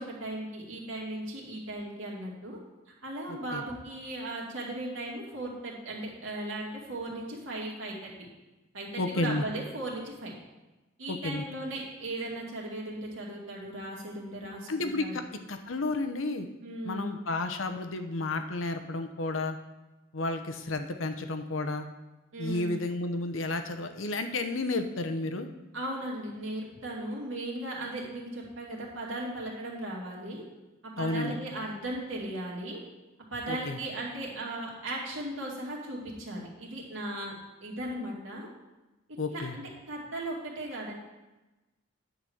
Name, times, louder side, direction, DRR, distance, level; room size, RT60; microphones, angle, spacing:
voice 1, 0.0-2.6 3.0-8.1 8.7-10.3 11.0-15.2 16.6-17.2 22.3-22.8 25.7-30.4 30.8-32.8 33.3-37.3 37.6-38.5 39.3-40.9, right 1 dB, 75° right, -3 dB, 2.4 m, -37 dB
voice 2, 3.3-3.6 9.0-9.4 11.1-11.4 14.7-15.2 15.5-16.5 16.8-19.6 20.1-21.9 22.4-25.5 31.0-31.4 33.5-33.8 39.2-39.5, left 2 dB, 80° left, 7 dB, 0.9 m, -32 dB
10.5 x 4.0 x 7.1 m, 1.1 s
head